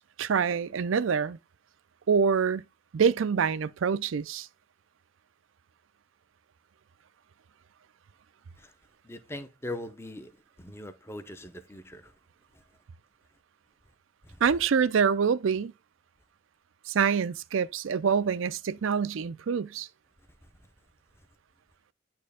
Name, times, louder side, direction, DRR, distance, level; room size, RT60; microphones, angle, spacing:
voice 1, 0.2-1.4 2.1-2.6 2.9-4.5 14.4-15.7 16.9-19.9, right 6 dB, 75° right, 0.4 m, -26 dB
voice 2, 9.0-10.3 10.6-12.1 14.2-14.4, left 1 dB, 10° left, 0.6 m, -40 dB
9.3 x 4.4 x 3.4 m
head